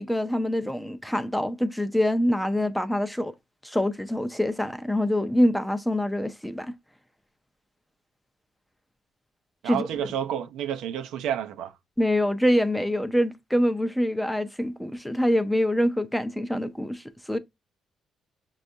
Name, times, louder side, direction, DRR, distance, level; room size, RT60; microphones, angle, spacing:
voice 1, 0.0-3.3 3.6-6.7 9.6-9.9 12.0-17.4, equal, 5° left, 0.4 m, -25 dB
voice 2, 9.6-11.7, right 10 dB, 90° right, 0.5 m, -30 dB
6.0 x 2.3 x 2.6 m
cardioid pair, 90°, 0 cm